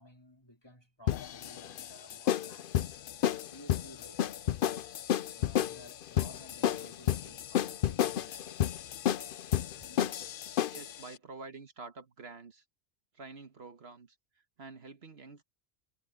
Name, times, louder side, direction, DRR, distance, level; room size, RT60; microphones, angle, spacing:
voice 1, 0.0-2.8 3.5-4.5 5.3-9.0 9.9-10.2, left 1 dB, 20° left, 3.5 m, -55 dB
sound 1, 1.1-11.0, left 10 dB, 60° left, 0.7 m, -31 dB
voice 2, 10.7-12.6 13.1-15.4, right 4 dB, 65° right, 1.6 m, -48 dB
omnidirectional pair, 1.1 m